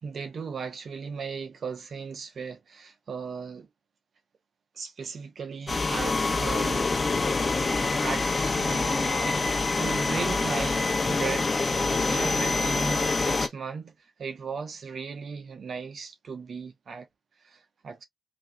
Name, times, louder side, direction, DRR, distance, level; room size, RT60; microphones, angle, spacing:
voice 1, 0.0-3.7 4.7-6.9 7.7-9.4 9.8-17.1 17.4-18.0, right 5 dB, 75° right, 1.3 m, -37 dB
sound 1, 5.7-13.5, left 3 dB, 45° left, 1.1 m, -26 dB
4.7 x 3.1 x 2.5 m
supercardioid pair, 45°, 0 cm